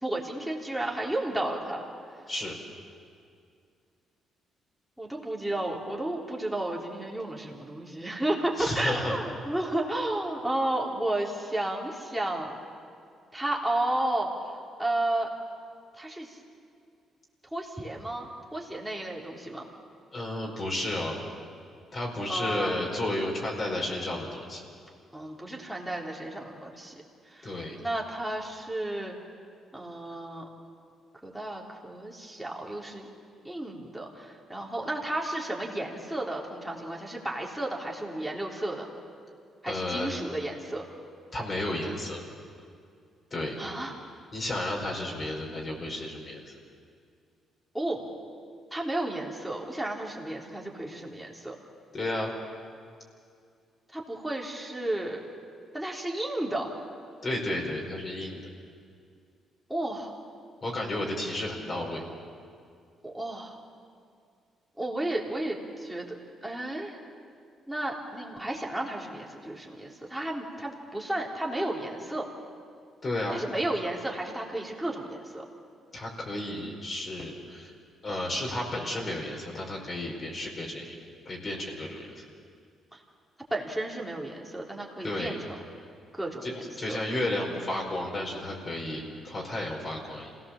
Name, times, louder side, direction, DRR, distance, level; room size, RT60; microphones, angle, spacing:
voice 1, 0.0-1.8 5.0-12.5 13.3-14.3 14.8-15.3 15.9-16.4 17.5-19.6 22.3-22.7 25.1-26.9 27.3-29.1 29.7-30.5 31.2-33.1 33.4-38.9 39.6-40.9 43.6-43.9 47.7-48.0 48.7-51.6 53.9-55.2 55.7-56.7 59.7-60.1 63.0-63.6 64.8-66.2 66.4-67.0 67.7-72.3 73.3-75.4 82.9-83.0 83.5-85.6 86.1-87.0, right 1 dB, 5° right, -2 dB, 3.8 m, -32 dB
voice 2, 8.6-9.2 20.1-21.2 21.9-24.6 27.4-27.7 39.7-40.1 41.3-42.2 43.3-43.6 44.3-46.5 51.9-52.3 57.2-58.4 60.6-62.0 73.0-73.4 75.9-77.7 78.0-80.9 81.2-82.2 85.0-85.4 86.4-86.5 86.8-90.3, left 1 dB, 40° left, -2 dB, 4.9 m, -32 dB
27.0 x 18.0 x 7.4 m, 2.3 s
cardioid pair, 90°, 0 cm